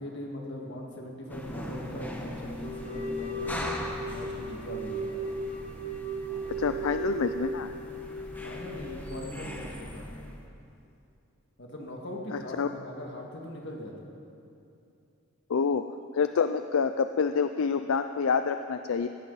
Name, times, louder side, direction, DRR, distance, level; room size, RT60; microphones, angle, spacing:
voice 1, 0.0-5.1 8.4-10.1 11.6-14.1, left 1 dB, 50° left, 0 dB, 2.0 m, -40 dB
sound 1, 1.3-10.5, left 1 dB, 10° left, 1.0 m, -40 dB
sound 2, 2.6-9.4, right 2 dB, 30° left, 1.8 m, -36 dB
voice 2, 6.6-7.7 12.3-12.7 15.5-15.8 16.1-19.1, left 5 dB, 70° left, 9 dB, 0.4 m, -27 dB
17.0 x 13.5 x 4.1 m, 2.7 s
head